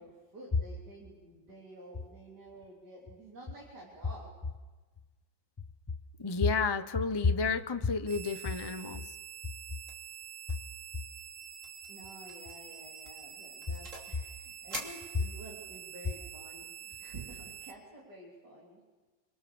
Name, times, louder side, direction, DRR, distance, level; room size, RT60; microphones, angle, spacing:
voice 1, 0.0-4.3 11.9-18.8, right 2 dB, 60° right, -2 dB, 4.3 m, -50 dB
voice 2, 6.2-9.0, left 4 dB, 30° left, 9 dB, 0.4 m, -30 dB
sound 1, 8.1-17.7, right 8 dB, 80° right, 2.1 m, -47 dB
sound 2, 9.9-10.2 10.5-10.7 11.0-11.1 11.6-11.9 12.3-12.5 13.0-14.2 14.7-15.7, right 1 dB, 40° right, 3.4 m, -45 dB
28.0 x 23.0 x 7.1 m, 1.3 s
omnidirectional pair, 2.0 m